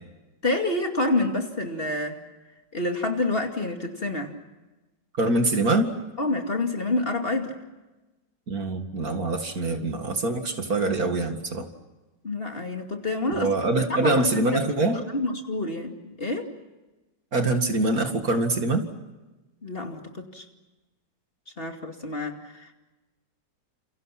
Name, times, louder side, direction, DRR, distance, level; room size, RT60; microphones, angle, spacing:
voice 1, 0.4-2.2 2.7-4.3 6.2-7.5 12.2-14.4 14.9-16.5 19.6-20.4 21.6-22.7, left 2 dB, 30° left, 4 dB, 2.6 m, -28 dB
voice 2, 5.2-5.9 8.5-11.7 13.3-15.0 17.3-18.8, right 2 dB, 55° right, 6 dB, 2.5 m, -24 dB
29.5 x 28.5 x 5.9 m, 1.1 s
omnidirectional pair, 1.9 m